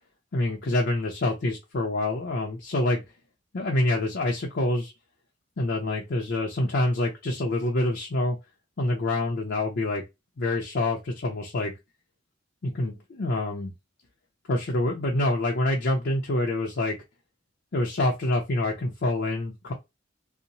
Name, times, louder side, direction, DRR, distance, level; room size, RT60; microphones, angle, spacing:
voice 1, 0.3-3.0 3.5-4.9 5.6-8.4 8.8-10.0 10.4-11.7 12.6-13.7 14.4-17.0 17.7-19.7, left 2 dB, 60° left, -1 dB, 0.5 m, -26 dB
2.8 x 2.0 x 2.6 m, 0.22 s
head